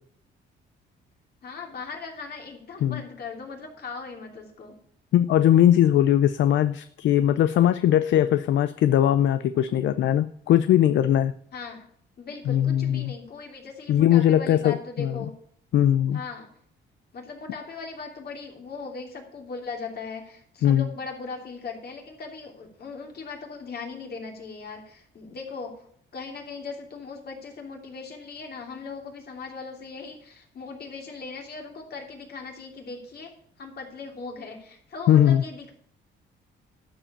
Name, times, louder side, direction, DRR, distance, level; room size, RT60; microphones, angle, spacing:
voice 1, 1.4-4.8 11.5-11.8 12.2-15.3 16.1-16.5 17.1-25.8 26.1-33.3 33.6-35.7, left 4 dB, 55° left, 2 dB, 3.0 m, -39 dB
voice 2, 5.1-11.3 12.5-13.1 13.9-15.1 15.7-16.2 20.6-20.9 35.1-35.4, left 11 dB, 70° left, 12 dB, 0.5 m, -20 dB
12.0 x 5.2 x 8.6 m, 0.64 s
cardioid pair, 90°, 20 cm